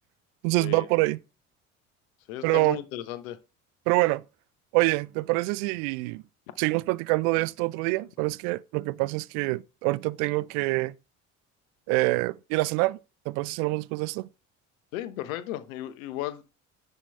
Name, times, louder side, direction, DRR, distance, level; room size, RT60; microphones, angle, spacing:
voice 1, 0.4-1.2 2.4-2.8 3.9-4.2 4.7-6.2 6.6-10.9 11.9-13.0 13.3-14.3, right 22 dB, 65° right, 0.5 m, -26 dB
voice 2, 2.3-3.4 14.9-16.4, left 14 dB, 75° left, 0.9 m, -35 dB
10.0 x 3.8 x 4.4 m
hypercardioid pair, 55°, 42 cm